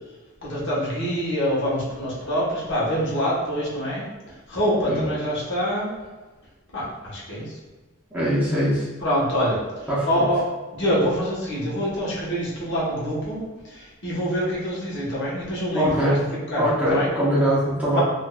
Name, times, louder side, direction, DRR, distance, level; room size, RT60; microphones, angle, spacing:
voice 1, 0.4-5.9 6.7-7.6 9.0-10.4 10.7-16.2 16.5-17.1 17.9-18.0, equal, 55° left, -7 dB, 1.1 m, -25 dB
voice 2, 8.1-8.9 9.9-10.2 15.7-16.2 16.6-18.0, equal, 5° right, -9 dB, 0.9 m, -22 dB
3.6 x 2.6 x 2.3 m, 1.2 s
head